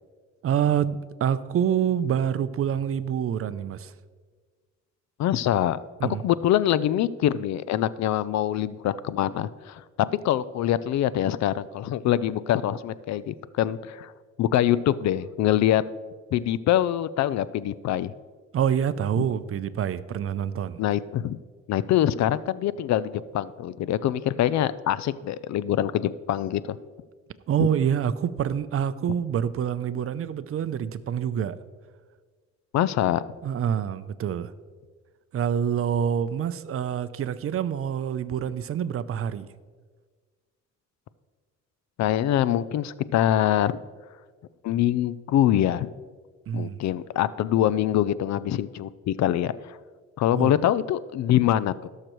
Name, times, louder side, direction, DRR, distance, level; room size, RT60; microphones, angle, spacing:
voice 1, 0.4-3.9 6.0-6.2 18.5-20.8 27.5-31.6 33.4-34.5 35.3-39.6 46.5-46.8 50.3-50.5, right 8 dB, 50° right, 15 dB, 0.5 m, -26 dB
voice 2, 5.2-5.8 6.2-9.8 10.2-14.1 14.4-15.8 16.3-18.1 19.2-19.3 20.8-21.4 21.7-26.8 27.6-27.7 32.7-33.2 42.0-43.8 44.6-45.9 46.5-49.8 50.2-51.9, left 11 dB, 65° left, 17 dB, 0.4 m, -24 dB
16.5 x 6.6 x 3.1 m, 1.5 s
cardioid pair, 90°, 30 cm